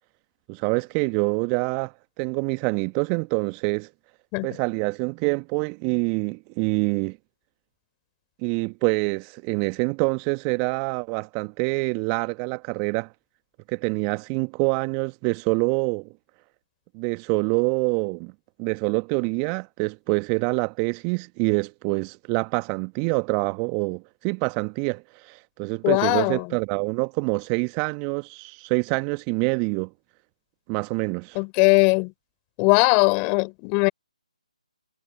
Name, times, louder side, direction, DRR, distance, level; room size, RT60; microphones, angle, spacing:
voice 1, 0.5-3.9 4.4-7.2 8.4-13.1 13.7-16.1 16.9-18.3 18.6-29.9 30.7-31.4, right 33 dB, 20° right, 1.1 m, -26 dB
voice 2, 25.8-26.6 31.3-32.1 32.6-33.9, left 37 dB, 20° left, 3.5 m, -20 dB
figure-of-eight pair, 145°, 4 cm